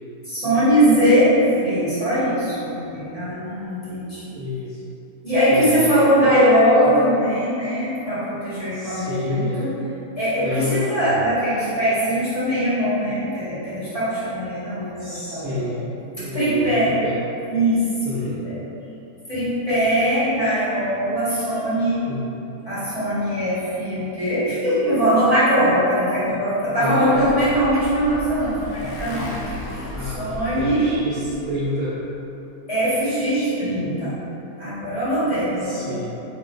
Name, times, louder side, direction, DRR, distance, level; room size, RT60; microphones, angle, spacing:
voice 1, 0.2-4.3 5.2-9.7 10.2-15.7 16.3-16.9 17.5-17.8 18.2-18.5 19.3-22.0 22.7-29.3 29.7-30.9 32.7-34.1 34.6-35.9, equal, 25° left, -14 dB, 1.3 m, -21 dB
voice 2, 4.3-4.8 5.5-6.4 6.8-7.0 8.7-9.7 10.4-10.9 15.0-17.2 18.0-18.4 22.0-22.3 26.8-27.3 29.9-32.0 35.6-36.1, left 1 dB, 65° right, -9 dB, 0.8 m, -29 dB
Motorcycle, 26.6-31.7, left 1 dB, 65° left, 0.9 m, -34 dB
4.6 x 3.1 x 2.4 m, 3.0 s
omnidirectional pair, 1.7 m